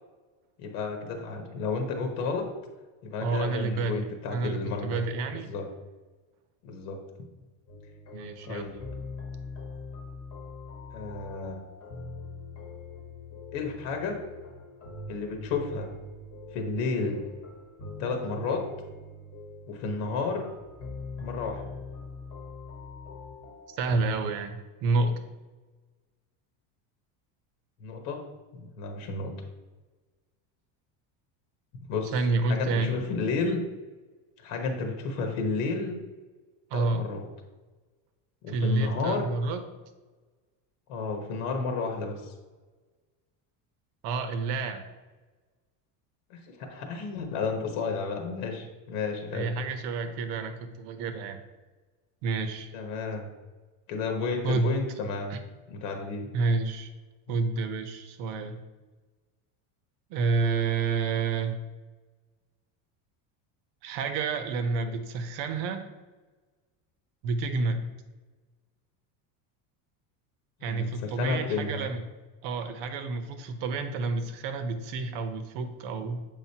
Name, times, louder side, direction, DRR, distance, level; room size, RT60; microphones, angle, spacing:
voice 1, 0.6-2.5 3.0-5.0 5.5-5.6 6.6-7.0 8.5-8.8 10.9-11.6 13.5-14.2 15.1-15.9 16.5-17.2 18.0-18.6 19.7-20.5 21.2-21.8 27.8-28.2 28.5-29.3 31.8-32.1 32.5-33.6 34.4-36.0 36.7-37.2 38.4-39.3 40.9-42.3 46.3-49.6 52.7-53.3 53.9-55.4 55.7-56.3 57.3-57.4 70.7-71.9, left 4 dB, 90° left, 3 dB, 1.3 m, -32 dB
voice 2, 3.2-5.5 8.1-8.7 23.7-25.2 32.1-33.0 36.7-37.1 38.5-39.6 44.0-44.8 49.3-51.4 52.2-52.7 54.4-54.8 55.3-55.4 56.3-56.9 57.3-58.6 60.1-61.5 63.8-65.9 67.2-67.9 70.6-72.0 72.4-76.3, right 3 dB, 65° right, 9 dB, 0.9 m, -29 dB
sound 1, 7.7-24.1, left 3 dB, 30° left, 1.1 m, -43 dB
7.4 x 5.0 x 2.8 m, 1.3 s
cardioid pair, 160°, 45 cm